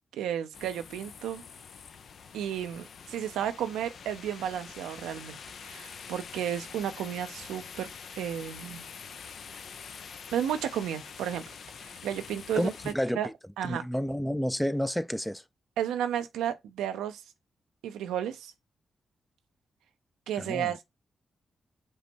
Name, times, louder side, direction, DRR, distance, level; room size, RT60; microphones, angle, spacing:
voice 1, 0.1-1.4 2.3-5.4 5.6-7.9 8.2-8.8 10.3-11.4 11.8-13.3 13.6-13.8 15.8-17.2 17.8-18.5 20.3-20.8, right 10 dB, 90° right, 0.5 m, -33 dB
sound 1, 0.5-12.9, left 6 dB, 70° left, 0.5 m, -46 dB
voice 2, 12.6-13.3 13.7-15.4 20.4-20.7, equal, 5° left, 0.4 m, -30 dB
5.3 x 2.1 x 4.4 m
supercardioid pair, 50°, 0 cm